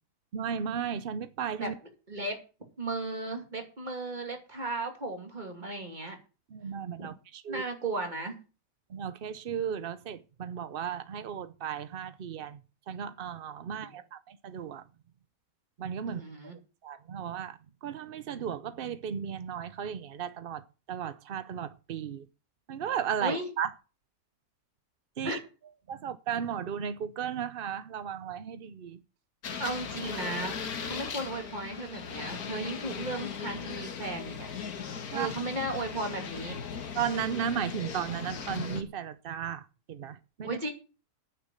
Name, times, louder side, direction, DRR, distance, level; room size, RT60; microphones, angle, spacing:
voice 1, 0.3-1.8 6.5-7.6 8.9-12.6 12.9-14.8 15.8-16.2 16.8-22.3 22.7-23.7 25.2-25.4 25.9-29.0 35.1-35.3 36.9-40.6, right 8 dB, 65° right, 0.5 m, -35 dB
voice 2, 2.1-2.4 2.8-6.2 7.5-8.4 13.7-13.9 16.1-16.5 23.2-23.5 25.2-25.4 29.6-30.6 30.8-34.5 35.1-36.6 40.4-40.7, right 2 dB, 25° right, 2.8 m, -35 dB
sound 1, 29.4-38.8, left 6 dB, 60° left, 1.8 m, -38 dB
9.5 x 6.9 x 8.9 m
omnidirectional pair, 1.8 m